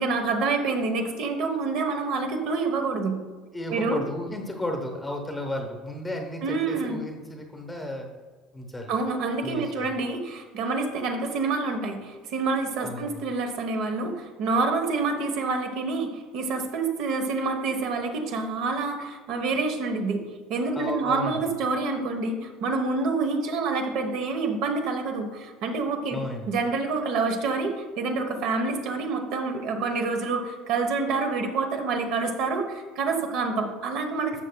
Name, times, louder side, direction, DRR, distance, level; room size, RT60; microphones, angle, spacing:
voice 1, 0.0-3.2 3.7-4.0 6.4-7.0 8.9-20.2 20.5-26.2 26.5-34.4, right 3 dB, 50° right, 5 dB, 1.0 m, -27 dB
voice 2, 3.5-8.1 8.5-8.9 9.4-9.9 12.8-13.2 20.7-21.5 26.1-26.5, left 1 dB, 5° left, 3 dB, 1.0 m, -33 dB
12.5 x 7.6 x 2.3 m, 1.4 s
cardioid pair, 180°, 0 cm